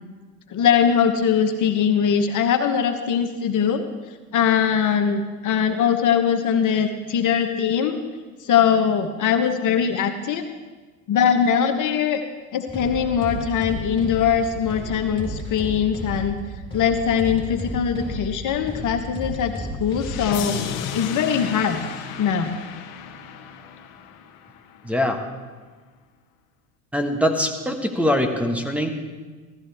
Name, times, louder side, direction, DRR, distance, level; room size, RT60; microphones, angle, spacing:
voice 1, 0.5-3.8 4.3-8.0 8.4-10.4 11.1-12.2 12.5-16.4 16.7-20.6 20.9-21.8 22.2-22.5, left 7 dB, 50° left, 7 dB, 1.1 m, -21 dB
sound 1, 12.7-20.4, equal, 10° left, 5.1 m, -33 dB
sound 2, 19.9-24.9, left 8 dB, 70° left, 1.2 m, -34 dB
voice 2, 24.8-25.2 26.9-28.9, left 1 dB, 5° right, 4 dB, 1.5 m, -22 dB
16.0 x 13.0 x 3.5 m, 1.4 s
hypercardioid pair, 80°, 40 cm